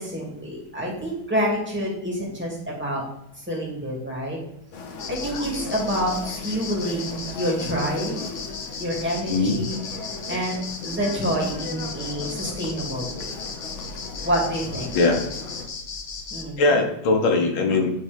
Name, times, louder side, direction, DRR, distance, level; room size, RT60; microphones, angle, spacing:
voice 1, 0.0-3.0 3.4-4.4 5.1-8.2 8.8-9.8 10.3-10.6 10.8-13.3 14.2-14.9 16.3-16.8, equal, 5° right, -4 dB, 2.3 m, -27 dB
sound 1, 4.7-15.7, left 4 dB, 50° left, 0.9 m, -38 dB
sound 2, 5.0-16.4, left 4 dB, 70° left, 0.5 m, -36 dB
voice 2, 16.6-18.0, left 3 dB, 90° left, 3 dB, 2.0 m, -20 dB
8.8 x 3.8 x 5.2 m, 0.80 s
omnidirectional pair, 2.2 m